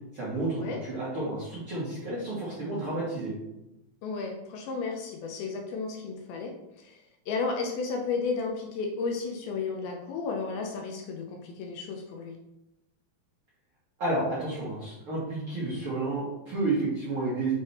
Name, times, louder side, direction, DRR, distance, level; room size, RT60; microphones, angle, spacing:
voice 1, 0.1-3.3 14.0-17.5, right 2 dB, 65° right, -8 dB, 1.3 m, -31 dB
voice 2, 4.0-12.4, left 4 dB, 80° left, 2 dB, 2.3 m, -33 dB
7.2 x 3.3 x 4.2 m, 0.90 s
omnidirectional pair, 4.8 m